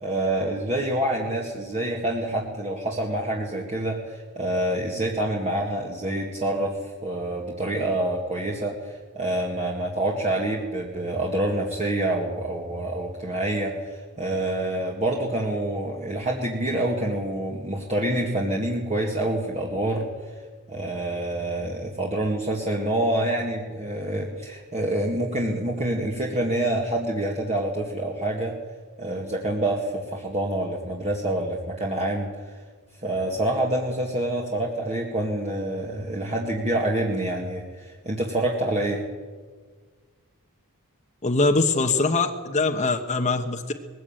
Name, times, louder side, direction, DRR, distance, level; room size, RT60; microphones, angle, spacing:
voice 1, 0.0-20.1 20.7-28.5 29.0-32.3 33.0-39.0, right 1 dB, 30° right, -2 dB, 2.1 m, -27 dB
voice 2, 41.2-43.7, left 3 dB, 30° left, 4 dB, 1.1 m, -22 dB
20.5 x 15.5 x 9.0 m, 1.5 s
head